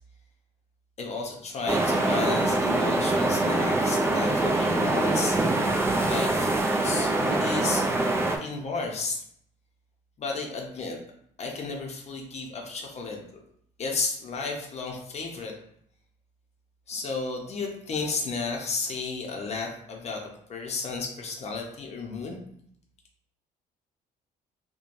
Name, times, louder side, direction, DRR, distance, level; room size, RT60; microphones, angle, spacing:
voice 1, 1.0-5.4 6.0-9.2 10.2-11.0 11.4-13.4 13.8-15.5 16.9-20.2 20.5-22.5, left 4 dB, 40° left, 1 dB, 0.7 m, -33 dB
sound 1, 1.7-8.4, right 2 dB, 15° right, 0.3 m, -24 dB
3.1 x 2.2 x 2.6 m, 0.69 s
cardioid pair, 110°, 17 cm